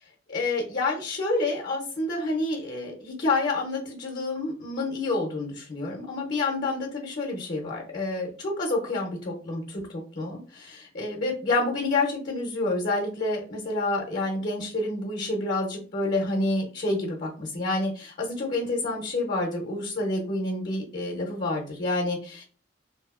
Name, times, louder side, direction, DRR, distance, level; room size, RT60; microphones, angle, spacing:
voice 1, 0.3-22.4, left 2 dB, 50° left, 0 dB, 0.7 m, -28 dB
2.7 x 2.4 x 2.3 m, 0.40 s
head